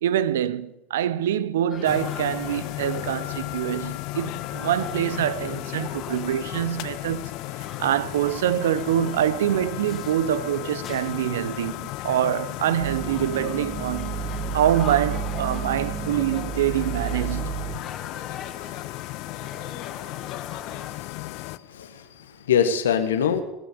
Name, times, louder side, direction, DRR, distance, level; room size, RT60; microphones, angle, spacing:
voice 1, 0.0-14.2 14.5-17.5, right 11 dB, 80° right, 0.6 m, -25 dB
sound 1, 1.7-21.0, left 7 dB, 40° left, 2.5 m, -42 dB
sound 2, 1.8-21.6, left 19 dB, 60° left, 0.5 m, -35 dB
sound 3, 12.8-17.8, right 7 dB, 30° right, 1.4 m, -31 dB
voice 2, 21.0-21.4 21.7-23.4, left 8 dB, 80° left, 1.4 m, -24 dB
19.5 x 7.9 x 8.6 m
hypercardioid pair, 75°, 0 cm